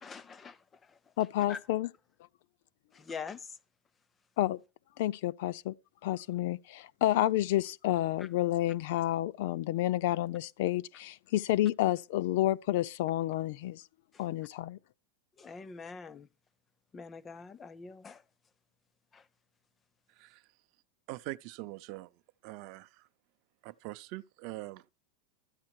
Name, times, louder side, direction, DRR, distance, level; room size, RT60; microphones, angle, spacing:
voice 1, 0.0-1.0 1.5-1.6 2.9-3.6 8.2-8.3 14.1-14.2 15.4-16.3 16.9-18.2 19.1-19.3, left 5 dB, 15° left, 0.6 m, -44 dB
voice 2, 1.2-1.9 4.4-4.6 5.0-5.7 6.0-13.8 14.2-14.8, left 14 dB, 60° left, 0.5 m, -30 dB
voice 3, 21.1-22.1 22.4-23.1 23.6-24.9, right 19 dB, 45° right, 0.6 m, -43 dB
13.0 x 9.6 x 4.5 m
supercardioid pair, 165°, 0 cm